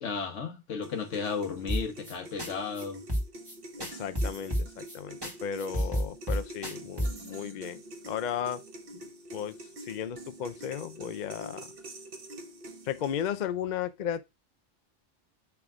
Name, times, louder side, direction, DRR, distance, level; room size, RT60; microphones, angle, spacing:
voice 1, 0.0-3.0 5.8-5.9, left 5 dB, 80° left, 1.4 m, -34 dB
sound 1, 0.8-13.4, right 1 dB, 50° right, 1.2 m, -46 dB
sound 2, 1.7-2.1 2.4-2.5 2.8-2.9 3.1-3.5 3.8-5.0 5.2-5.3 5.6-7.3, equal, 20° right, 1.9 m, -30 dB
voice 2, 3.8-8.6 8.9-9.0 9.3-9.6 9.8-11.7 12.9-14.2, left 9 dB, 55° left, 0.5 m, -35 dB
6.0 x 3.5 x 4.7 m
omnidirectional pair, 1.2 m